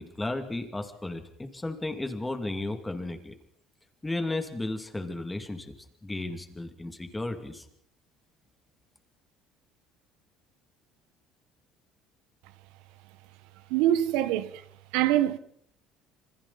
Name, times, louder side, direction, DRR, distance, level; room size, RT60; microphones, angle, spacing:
voice 1, 0.0-3.3 4.0-5.7 6.0-7.7, left 2 dB, 10° left, 2.6 m, -34 dB
voice 2, 13.7-14.5 14.9-15.4, right 13 dB, 90° right, 1.4 m, -24 dB
27.5 x 26.0 x 4.2 m
cardioid pair, 160°, 0 cm